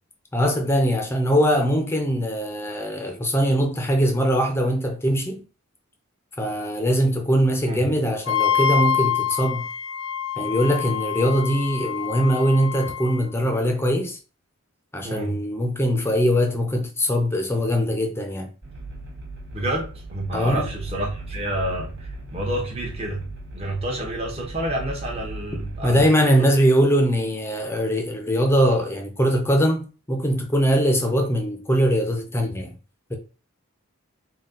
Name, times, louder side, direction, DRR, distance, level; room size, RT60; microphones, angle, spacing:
voice 1, 0.3-5.4 6.4-9.6 10.4-14.2 14.9-18.5 20.3-20.7 25.8-32.7 33.1-33.2, equal, 10° left, 0.6 m, -21 dB
Wind instrument woodwind instrument, 8.3-13.2, left 8 dB, 65° left, 0.5 m, -26 dB
voice 2, 15.0-15.4 19.5-23.3 23.5-26.0 26.4-26.5, right 1 dB, 25° right, 0.9 m, -29 dB
sound 1, 18.6-26.0, right 2 dB, 50° right, 1.4 m, -37 dB
4.1 x 2.3 x 3.7 m
head